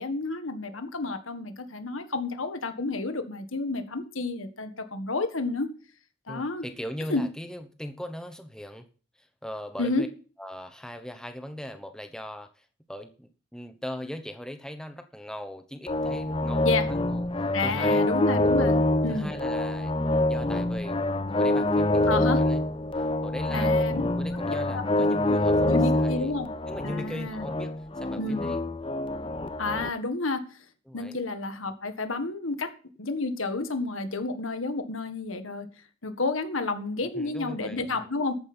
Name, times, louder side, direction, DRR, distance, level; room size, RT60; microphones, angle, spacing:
voice 1, 0.0-5.7 6.3-6.6 7.1-7.2 9.8-10.0 16.6-16.9 17.5-18.7 19.0-19.3 22.1-22.4 23.5-24.0 24.7-25.1 25.7-26.5 26.8-27.5 28.2-28.4 29.6-30.4 30.9-32.7 33.0-35.7 36.0-38.4, left 3 dB, 90° left, 8 dB, 1.7 m, -30 dB
voice 2, 6.3-8.9 9.2-10.1 10.4-18.1 19.1-19.9 20.3-21.0 21.3-22.6 22.9-26.3 26.7-28.6 30.9-31.2 37.1-38.1, equal, 5° left, 7 dB, 0.9 m, -39 dB
sound 1, 15.9-29.9, left 1 dB, 25° left, 0.6 m, -26 dB
13.5 x 9.3 x 4.4 m, 0.39 s
head